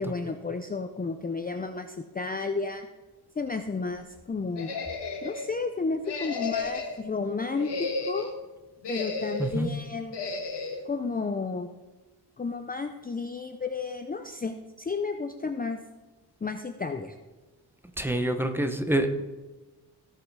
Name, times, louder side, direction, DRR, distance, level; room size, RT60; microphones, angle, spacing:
voice 1, 0.0-2.9 3.4-4.7 5.2-8.3 8.9-10.2 10.9-11.7 12.4-15.8 16.4-17.2, left 4 dB, 20° left, 6 dB, 0.5 m, -32 dB
sound 1, 4.6-5.5 6.0-7.0 7.5-8.3 8.8-9.6 10.1-10.8, left 4 dB, 80° left, 1.5 m, -33 dB
voice 2, 18.0-19.1, right 1 dB, 5° right, 6 dB, 0.9 m, -26 dB
17.0 x 5.7 x 4.7 m, 1.1 s
wide cardioid pair, 135°, 41 cm